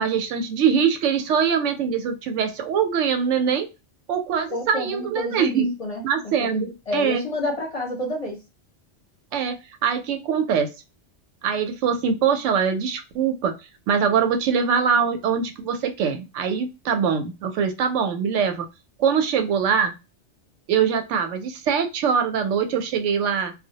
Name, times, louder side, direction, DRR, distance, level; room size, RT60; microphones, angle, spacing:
voice 1, 0.0-3.7 4.1-5.7 6.0-7.2 9.3-10.7 11.4-13.5 13.9-18.7 19.0-19.9 20.7-23.5, right 7 dB, 90° right, 7 dB, 0.9 m, -23 dB
voice 2, 4.5-6.0 6.4-8.4, left 1 dB, 45° left, 0 dB, 0.5 m, -29 dB
2.2 x 2.1 x 2.7 m, 0.26 s
omnidirectional pair, 1.2 m